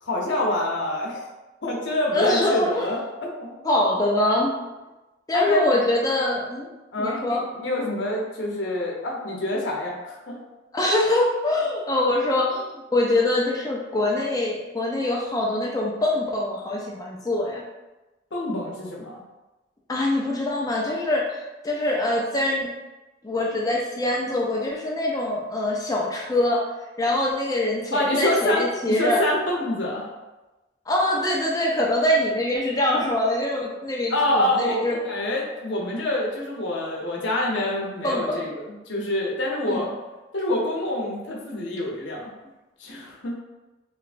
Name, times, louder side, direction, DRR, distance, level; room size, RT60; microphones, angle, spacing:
voice 1, 0.0-1.2 1.6-3.6 5.3-5.7 6.9-10.4 18.3-19.2 27.9-30.0 34.1-39.9 40.3-42.3 42.8-43.3, left 1 dB, 80° left, -2 dB, 0.7 m, -26 dB
voice 2, 2.1-2.9 3.6-4.7 5.3-6.7 7.0-7.4 10.7-12.6 12.9-17.6 19.9-22.7 23.2-26.6 27.0-29.2 30.9-35.0 38.0-38.4 39.7-39.8, left 1 dB, 20° left, -2 dB, 0.4 m, -24 dB
3.2 x 3.0 x 2.5 m, 1.1 s
head